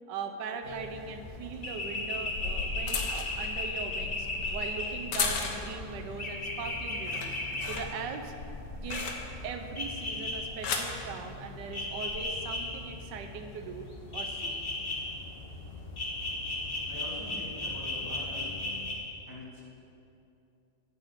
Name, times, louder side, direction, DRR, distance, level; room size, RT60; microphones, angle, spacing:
voice 1, 0.1-8.3 8.7-9.1 9.4-13.9 14.1-14.6, right 5 dB, 80° right, 5 dB, 1.5 m, -40 dB
sound 1, 0.6-18.9, left 2 dB, 35° left, 1.6 m, -37 dB
sound 2, 1.9-5.9 6.3-6.7 7.0-9.6 10.3-11.0 11.9-12.2, left 5 dB, 75° left, 1.6 m, -36 dB
voice 2, 16.9-18.5 19.3-19.6, left 2 dB, 10° left, -4 dB, 2.0 m, -44 dB
10.0 x 7.5 x 8.1 m, 2.7 s
omnidirectional pair, 1.9 m